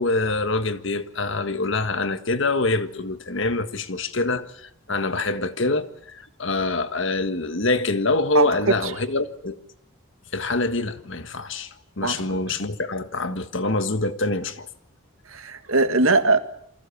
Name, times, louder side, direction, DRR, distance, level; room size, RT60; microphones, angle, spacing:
voice 1, 0.0-9.6 10.3-14.7, left 3 dB, 60° left, 1.5 m, -25 dB
voice 2, 8.3-8.9 12.0-12.4 15.3-16.4, right 3 dB, 70° right, 1.9 m, -21 dB
28.0 x 24.5 x 7.2 m
head